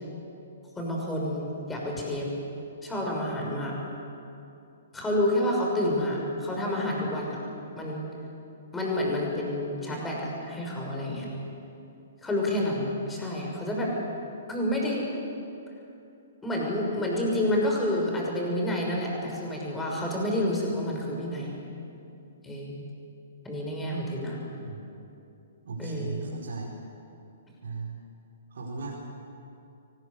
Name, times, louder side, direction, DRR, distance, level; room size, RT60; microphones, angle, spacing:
voice 1, 0.8-2.3 2.8-3.7 4.9-7.4 7.8-8.0 8.7-11.3 12.2-13.9 14.5-15.1 16.4-21.5 22.4-22.8 23.4-24.4 25.8-26.2, left 1 dB, 10° left, -2 dB, 6.3 m, -29 dB
voice 2, 25.6-26.7 27.6-27.9 28.5-28.9, right 4 dB, 60° right, -3 dB, 4.3 m, -36 dB
24.0 x 20.0 x 8.3 m, 2.7 s
figure-of-eight pair, 120°, 0 cm